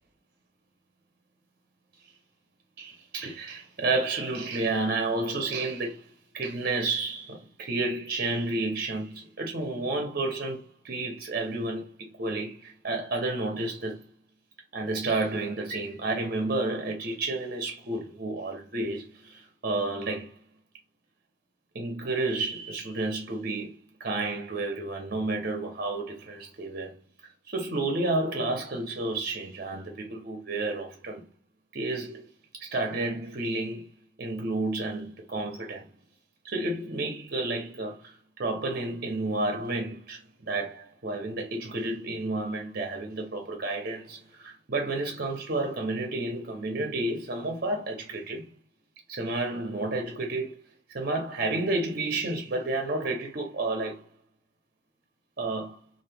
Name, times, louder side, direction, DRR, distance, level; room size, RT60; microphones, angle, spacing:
voice 1, 2.8-14.1 14.7-20.4 21.7-27.0 27.5-31.2 31.7-32.3 32.5-33.9 34.2-35.9 36.4-48.5 49.1-50.6 50.9-54.1 55.4-55.8, right 2 dB, 50° right, 0.8 m, -31 dB
2.9 x 2.6 x 3.4 m
head